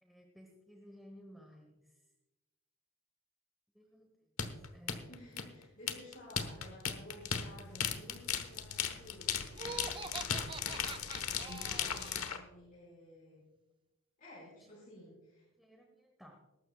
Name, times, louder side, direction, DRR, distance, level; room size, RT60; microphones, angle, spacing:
voice 1, 0.0-2.1 3.7-4.1 4.7-5.4 14.6-14.7 15.6-16.4, equal, ahead, 3 dB, 1.1 m, -57 dB
sound 1, 4.4-12.4, left 8 dB, 85° left, 1.2 m, -36 dB
voice 2, 5.1-10.5 11.3-13.5 14.2-15.4, left 1 dB, 40° left, -7 dB, 5.0 m, -54 dB
Laughter, 9.5-12.4, right 5 dB, 25° right, 0.4 m, -45 dB
21.5 x 12.0 x 2.3 m, 1.1 s
head